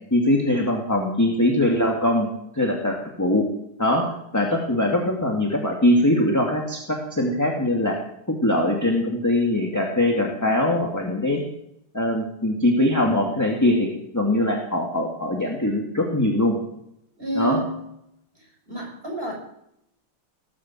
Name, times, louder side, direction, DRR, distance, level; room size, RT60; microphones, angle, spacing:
voice 1, 0.1-2.3 2.5-3.5 3.8-8.0 8.3-11.4 11.9-13.9 14.1-16.6 17.4-17.6, left 1 dB, 10° left, 0 dB, 2.1 m, -22 dB
voice 2, 17.2-17.7 18.7-19.3, right 1 dB, 25° right, 0 dB, 6.3 m, -28 dB
19.0 x 8.8 x 7.6 m, 0.77 s
omnidirectional pair, 2.3 m